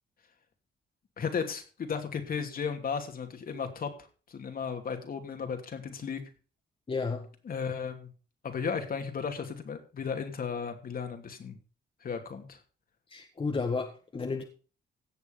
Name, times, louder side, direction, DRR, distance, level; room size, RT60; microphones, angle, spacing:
voice 1, 1.2-3.9 4.3-6.2 7.4-8.1 8.4-11.6 12.0-12.6, left 6 dB, 50° left, 2.8 m, -35 dB
voice 2, 6.9-7.3 13.1-14.4, left 4 dB, 30° left, 1.9 m, -32 dB
16.5 x 7.0 x 5.2 m
cardioid pair, 100°, 19 cm